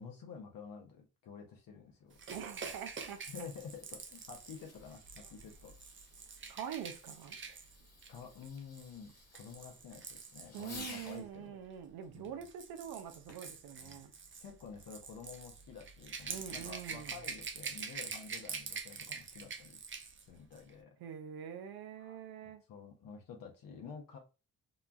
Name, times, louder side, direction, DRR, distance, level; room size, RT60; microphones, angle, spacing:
voice 1, 0.0-2.1 3.3-5.7 7.5-7.6 8.1-11.6 12.1-12.4 13.8-14.0 14.4-19.8 20.3-21.0 22.0-24.2, left 6 dB, 70° left, 0.8 m, -50 dB
Fireworks, 1.9-11.3 13.3-13.6 14.3-14.4, left 3 dB, 45° left, 1.2 m, -55 dB
Rattle / Rattle (instrument), 2.2-11.2 12.1-20.2 20.5-20.7, right 5 dB, 35° right, 0.6 m, -46 dB
voice 2, 2.3-3.5 6.5-7.4 10.5-14.1 16.3-17.2 21.0-22.6, right 9 dB, 80° right, 0.6 m, -45 dB
2.9 x 2.2 x 2.4 m
cardioid pair, 70°, 35 cm